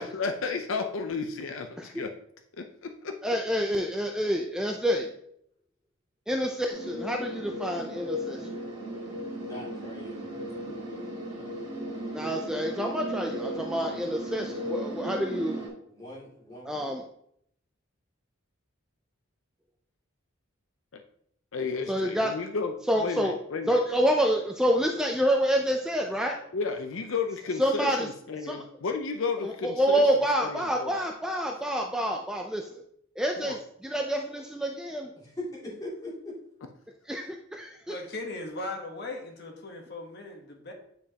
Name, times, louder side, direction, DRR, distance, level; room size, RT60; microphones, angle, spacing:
voice 1, 0.0-2.1 2.6-3.1 20.9-21.0 21.5-23.8 26.5-30.1 30.4-31.0 33.4-33.6, left 4 dB, 70° left, 6 dB, 0.6 m, -33 dB
voice 2, 3.2-5.1 6.3-8.5 12.1-15.7 16.7-17.0 21.9-22.3 22.9-23.4 23.7-26.4 27.6-28.1 28.4-28.6 29.4-32.8 33.2-33.6 33.8-35.1 37.1-37.9, equal, 5° right, 1 dB, 0.4 m, -27 dB
sound 1, 6.7-15.7, equal, 25° right, 2.3 m, -36 dB
voice 3, 9.3-10.4 15.9-16.7 35.2-36.3, left 1 dB, 20° left, -6 dB, 2.5 m, -40 dB
voice 4, 37.9-40.7, left 2 dB, 55° left, 2 dB, 1.2 m, -38 dB
9.2 x 5.1 x 2.8 m, 0.70 s
head